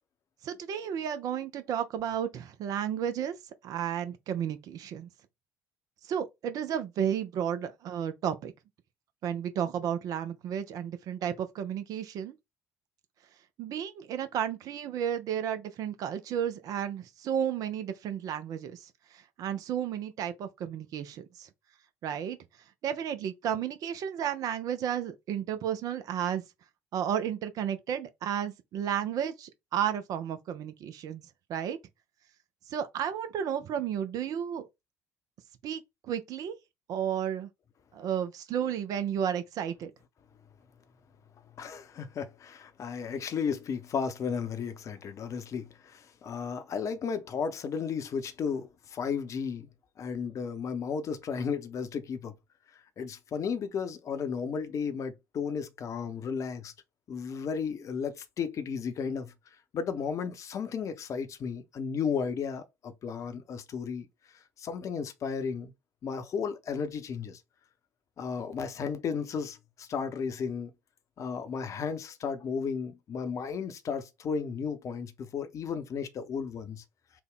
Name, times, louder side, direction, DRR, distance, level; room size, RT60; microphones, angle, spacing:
voice 1, 0.4-3.3 3.6-5.1 6.1-8.5 9.2-12.3 13.6-21.5 22.0-22.4 22.8-26.4 26.9-31.2 31.5-31.8 32.7-34.7 35.6-35.8 36.1-36.6 36.9-37.5 37.9-39.9, right 9 dB, 50° right, 0.5 m, -32 dB
voice 2, 41.6-49.7 50.0-52.3 53.0-56.7 57.1-59.3 59.7-64.1 64.6-65.7 66.0-67.4 68.2-70.7 71.2-76.8, left 6 dB, 45° left, 0.7 m, -34 dB
3.5 x 2.2 x 3.6 m
figure-of-eight pair, 55°, 8 cm